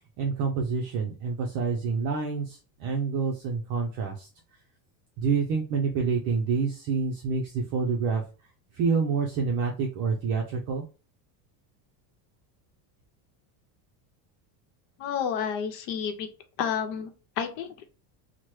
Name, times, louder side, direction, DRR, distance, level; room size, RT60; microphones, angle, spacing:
voice 1, 0.2-4.3 5.2-8.2 8.7-10.8, right 5 dB, 45° right, 0 dB, 0.5 m, -27 dB
voice 2, 15.0-16.3 16.6-17.9, left 7 dB, 90° left, 7 dB, 0.8 m, -30 dB
3.0 x 2.1 x 3.1 m, 0.35 s
cardioid pair, 160°, 49 cm